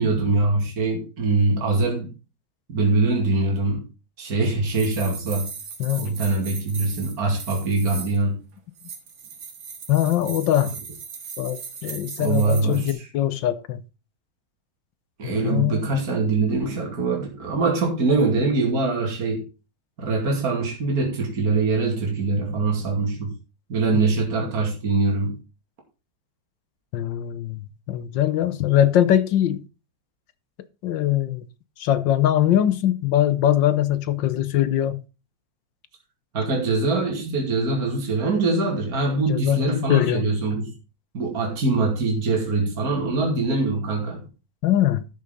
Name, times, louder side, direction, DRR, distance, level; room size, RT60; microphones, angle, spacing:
voice 1, 0.0-2.1 2.7-3.9 4.2-5.5 5.9-8.4 12.2-13.1 15.2-19.4 20.0-23.3 23.7-25.4 36.3-40.7 41.1-44.3, right 3 dB, 50° right, 3.0 m, -23 dB
sound 1, 4.7-8.2 8.8-12.9, right 6 dB, 75° right, 2.4 m, -38 dB
voice 2, 5.8-6.1 9.9-10.7 11.4-13.8 15.2-16.0 26.9-29.6 30.8-31.5 31.8-35.0 39.3-40.3 44.6-45.0, left 12 dB, 75° left, 1.5 m, -22 dB
12.5 x 6.7 x 3.9 m
omnidirectional pair, 2.1 m